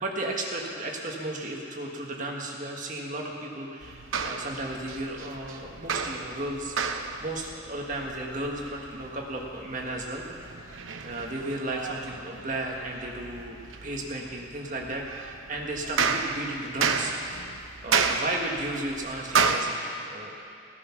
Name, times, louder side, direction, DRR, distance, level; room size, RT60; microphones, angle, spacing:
voice 1, 0.0-6.7 7.2-10.2 11.0-17.1 17.8-20.4, right 1 dB, 40° right, 0 dB, 1.6 m, -34 dB
sound 1, 3.8-19.6, right 5 dB, 90° right, 0.9 m, -32 dB
17.0 x 9.7 x 6.0 m, 2.6 s
head